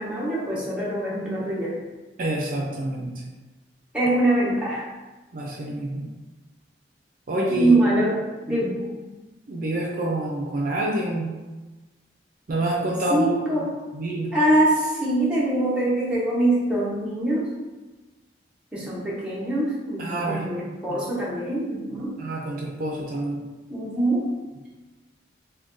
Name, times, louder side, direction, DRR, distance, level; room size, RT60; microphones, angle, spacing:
voice 1, 0.0-1.8 3.9-4.9 7.5-8.2 8.5-8.8 13.1-13.7 14.3-17.5 18.7-22.2 23.7-24.3, right 1 dB, 5° right, -7 dB, 0.7 m, -23 dB
voice 2, 2.2-3.1 5.3-6.1 7.3-7.7 8.5-8.6 9.5-11.3 12.5-13.2 13.9-14.3 20.0-20.6 20.9-21.0 22.2-23.4, right 1 dB, 50° right, -2 dB, 0.4 m, -27 dB
2.5 x 2.2 x 3.6 m, 1.2 s
head